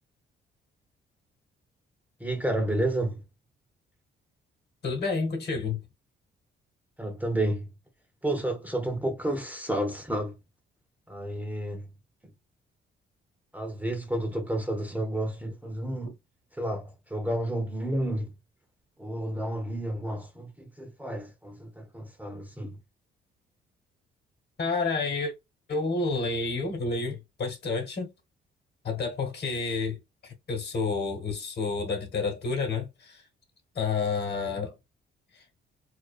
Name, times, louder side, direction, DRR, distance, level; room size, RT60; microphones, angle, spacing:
voice 1, 2.2-3.2 7.0-7.7 8.2-10.3 11.1-11.9 13.5-16.1 16.6-18.3 19.0-22.8, right 1 dB, 10° right, 0.5 m, -31 dB
voice 2, 4.8-5.8 24.6-25.3 25.7-28.1 28.8-30.0 30.2-33.2 33.7-34.7, left 4 dB, 55° left, 1.1 m, -29 dB
2.4 x 2.3 x 2.3 m
cardioid pair, 90°, 20 cm